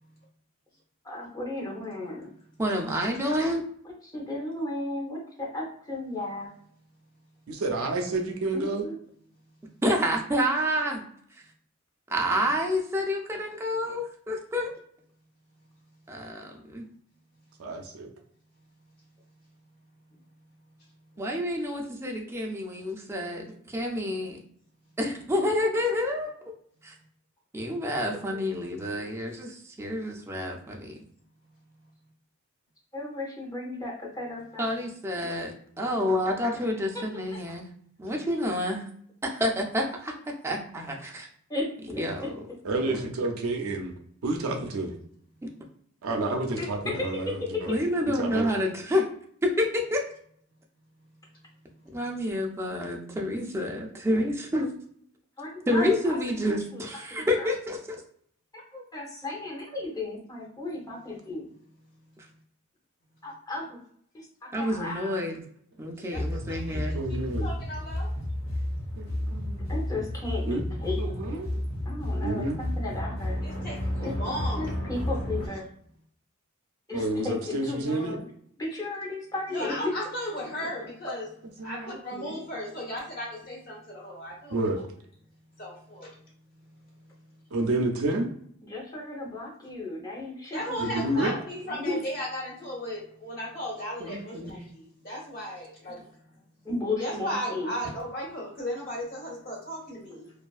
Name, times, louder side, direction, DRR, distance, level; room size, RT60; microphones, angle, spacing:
voice 1, 1.0-2.3 3.8-6.5 8.5-8.9 32.9-34.7 36.9-37.0 37.3-37.4 41.5-42.3 46.6-47.8 55.4-56.2 56.5-57.5 58.5-61.5 63.2-63.8 64.1-65.2 69.1-69.2 69.7-71.3 71.8-73.4 74.0-74.1 74.6-75.7 76.9-78.2 78.6-79.9 80.4-81.2 88.6-92.0 96.6-97.7, left 2 dB, 15° left, -2 dB, 0.7 m, -35 dB
voice 2, 2.6-3.6 9.8-11.0 12.1-14.7 16.1-16.9 21.2-24.4 25.0-26.3 26.8-26.9 27.5-31.0 34.6-37.7 38.0-38.9 39.2-41.3 41.9-42.4 42.9-43.1 47.7-49.0 49.4-50.0 51.9-54.7 55.7-57.8 64.5-65.3 65.8-66.9, left 1 dB, 10° right, 1 dB, 0.4 m, -28 dB
voice 3, 7.5-8.9 17.6-18.1 42.6-43.9 44.2-44.9 46.0-47.7 48.2-48.4 66.7-67.5 69.0-69.7 70.5-70.6 71.0-71.5 72.2-72.6 74.0-74.5 75.4-75.5 76.9-78.2 81.6-82.4 84.5-84.8 87.5-88.3 90.8-91.3 94.0-94.6, right 2 dB, 85° right, 2 dB, 0.5 m, -30 dB
sound 1, 66.1-75.5, left 1 dB, 80° left, 0.9 m, -32 dB
voice 4, 66.1-68.2 68.4-68.6 73.4-74.7 79.5-81.3 81.6-84.6 85.6-86.3 86.5-87.2 90.5-96.2 97.0-100.3, equal, 45° left, -3 dB, 1.2 m, -36 dB
2.6 x 2.3 x 2.3 m, 0.64 s
head